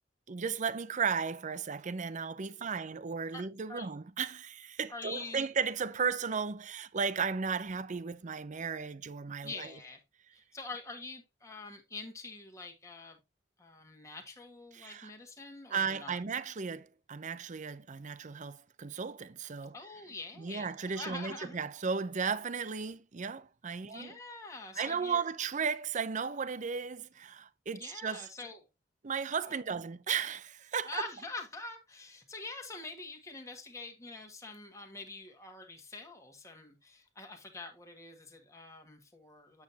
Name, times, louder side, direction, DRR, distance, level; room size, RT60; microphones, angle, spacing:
voice 1, 0.3-9.7 14.7-15.1 15.7-19.7 20.4-24.2 24.8-28.3 29.0-31.0, right 6 dB, 40° right, 0.6 m, -35 dB
voice 2, 2.5-3.0 3.3-3.9 4.9-5.5 9.4-10.0 10.5-13.2 13.6-16.2 19.7-21.6 23.8-25.2 27.7-28.7 29.4-29.6 30.8-39.6, left 3 dB, 15° left, 1.7 m, -45 dB
8.8 x 7.2 x 2.8 m
head